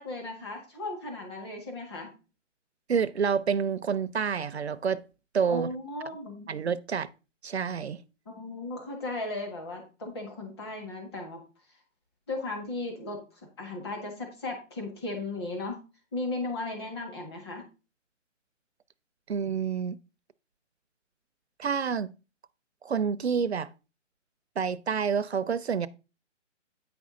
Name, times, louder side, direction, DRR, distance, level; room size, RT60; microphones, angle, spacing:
voice 1, 0.0-2.1 5.5-6.5 8.2-11.4 12.3-15.8 16.1-17.6, left 2 dB, 20° left, 1.6 m, -36 dB
voice 2, 2.9-5.0 5.3-5.7 6.5-7.1 7.4-8.0 19.3-20.0 21.6-22.1 22.8-23.7 24.6-25.9, right 6 dB, 55° right, 0.5 m, -28 dB
9.1 x 5.2 x 3.7 m
hypercardioid pair, 175°, 38 cm